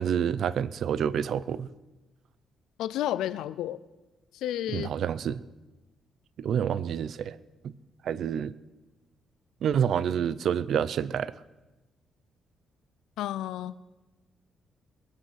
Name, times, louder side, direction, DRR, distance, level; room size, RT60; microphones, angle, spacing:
voice 1, 0.0-1.7 4.7-5.4 6.4-7.4 7.6-7.7 8.0-8.5 9.6-11.3, right 8 dB, 65° right, 18 dB, 0.6 m, -28 dB
voice 2, 2.8-3.8 4.3-4.9 13.2-13.8, left 12 dB, 85° left, 16 dB, 0.5 m, -31 dB
22.0 x 9.0 x 5.7 m, 1.1 s
cardioid pair, 90°, 0 cm